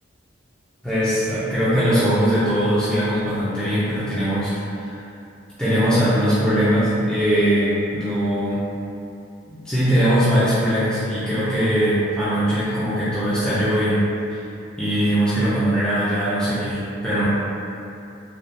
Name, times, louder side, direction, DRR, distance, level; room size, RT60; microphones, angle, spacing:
voice 1, 0.8-5.0 5.6-8.7 9.5-14.4 14.8-17.2, equal, 5° left, -14 dB, 0.5 m, -21 dB
3.3 x 2.3 x 2.6 m, 2.7 s
head